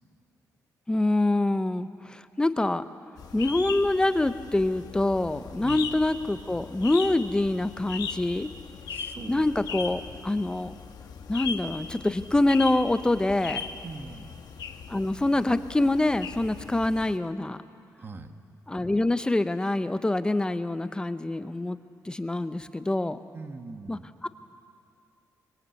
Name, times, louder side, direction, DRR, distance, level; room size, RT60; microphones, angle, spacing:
voice 1, 0.9-2.8 3.3-8.5 9.3-10.7 11.3-13.6 14.9-17.6 18.7-21.8 22.0-23.2 23.9-24.3, left 2 dB, 10° left, 11 dB, 0.8 m, -25 dB
sound 1, 3.2-17.2, left 6 dB, 75° left, 1.4 m, -39 dB
voice 2, 8.9-9.5 13.8-14.3 18.0-18.3 23.3-24.1, right 3 dB, 35° right, 7 dB, 1.4 m, -41 dB
23.5 x 21.5 x 8.4 m, 2.4 s
wide cardioid pair, 130°, 7 cm